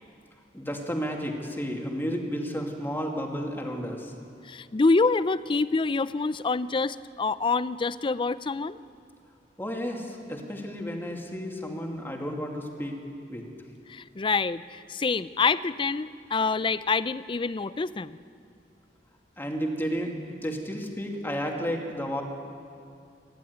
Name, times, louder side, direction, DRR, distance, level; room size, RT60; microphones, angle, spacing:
voice 1, 0.5-4.1 9.6-13.0 13.3-13.5 19.4-22.2, equal, 10° left, 1 dB, 2.3 m, -32 dB
voice 2, 4.4-8.8 13.9-18.2, left 4 dB, 25° left, 16 dB, 0.4 m, -26 dB
28.0 x 11.5 x 9.5 m, 2.4 s
head